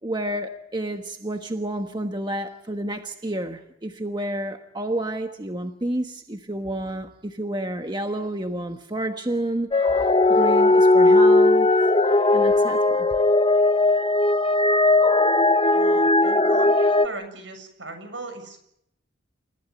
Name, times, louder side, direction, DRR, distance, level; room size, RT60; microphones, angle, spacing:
voice 1, 0.0-11.7 12.3-13.1, right 1 dB, 25° right, 1.3 m, -30 dB
sound 1, 9.7-17.1, left 2 dB, 25° left, 0.9 m, -18 dB
voice 2, 15.7-18.6, right 2 dB, 70° right, 7.2 m, -37 dB
29.5 x 15.5 x 9.6 m
head